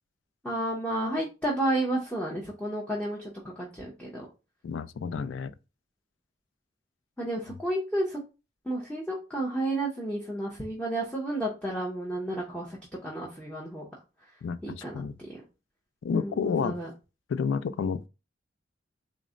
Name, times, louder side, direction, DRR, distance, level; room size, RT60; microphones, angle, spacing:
voice 1, 0.4-4.3 7.2-8.2 8.6-13.8 14.6-15.4 16.1-16.9, right 1 dB, 5° left, 0.7 m, -32 dB
voice 2, 4.6-5.5 14.4-15.2 16.0-16.8 17.3-18.1, left 6 dB, 90° left, 0.3 m, -30 dB
4.0 x 2.1 x 3.7 m
head